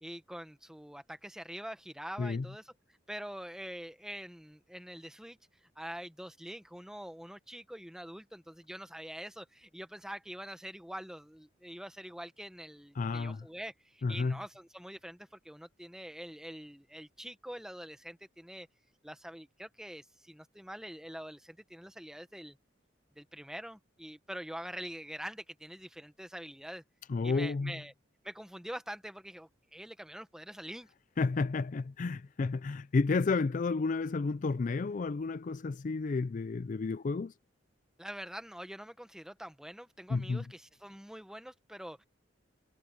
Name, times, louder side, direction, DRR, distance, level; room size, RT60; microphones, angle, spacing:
voice 1, 0.0-2.7 3.1-5.4 5.7-18.7 19.0-22.6 23.1-26.8 27.2-27.9 28.2-30.9 38.0-42.0, equal, 5° right, 1.2 m, -45 dB
voice 2, 13.0-13.5 14.0-14.4 27.1-27.7 31.2-37.3 40.1-40.4, left 4 dB, 40° left, 0.4 m, -31 dB
head